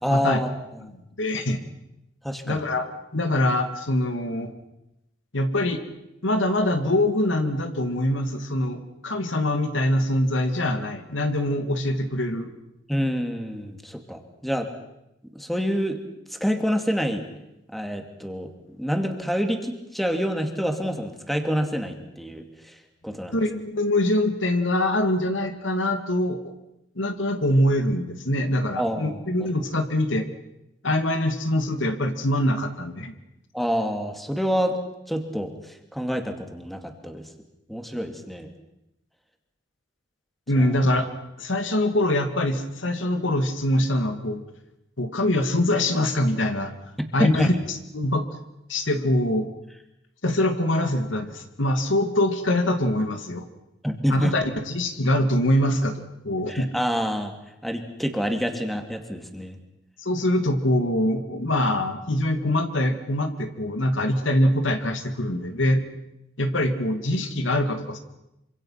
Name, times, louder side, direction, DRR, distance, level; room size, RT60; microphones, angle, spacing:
voice 1, 0.0-0.5 2.2-2.7 12.9-14.7 15.3-16.0 16.3-17.2 17.7-18.5 18.8-22.4 23.0-23.4 28.8-29.2 33.5-34.8 35.1-37.3 37.7-38.5 40.6-40.7 47.0-47.5 53.8-54.3 56.5-57.4 57.6-59.6, equal, ahead, 5 dB, 2.4 m, -27 dB
voice 2, 1.2-1.6 2.5-4.5 5.3-5.8 6.2-12.5 23.3-26.4 27.0-30.2 30.8-33.1 40.5-41.1 41.4-44.4 45.0-46.7 47.1-47.5 47.9-48.2 48.7-49.5 50.2-53.5 54.1-56.7 60.0-65.9 66.4-68.0, left 1 dB, 85° left, 7 dB, 2.5 m, -24 dB
26.5 x 25.5 x 5.9 m, 0.87 s
head